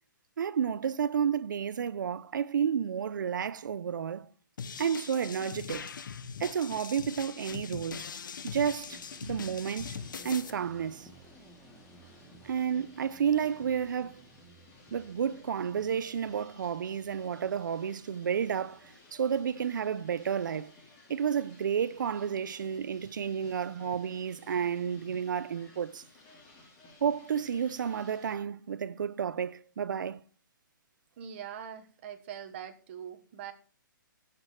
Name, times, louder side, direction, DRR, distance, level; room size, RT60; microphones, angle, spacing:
voice 1, 0.4-4.3 4.8-5.9 6.4-8.1 8.4-9.9 10.2-11.1 12.4-14.2 14.9-20.7 21.1-26.0 27.0-30.2, right 7 dB, 65° right, 0.8 m, -31 dB
sound 1, 4.6-10.5, left 6 dB, 65° left, 1.2 m, -41 dB
sound 2, 8.5-28.4, left 2 dB, 20° left, 3.6 m, -58 dB
sound 3, 8.7-20.2, right 3 dB, ahead, 1.4 m, -58 dB
voice 2, 31.2-33.5, right 8 dB, 35° right, 1.5 m, -42 dB
15.5 x 6.1 x 4.8 m
hypercardioid pair, 165°, 11 cm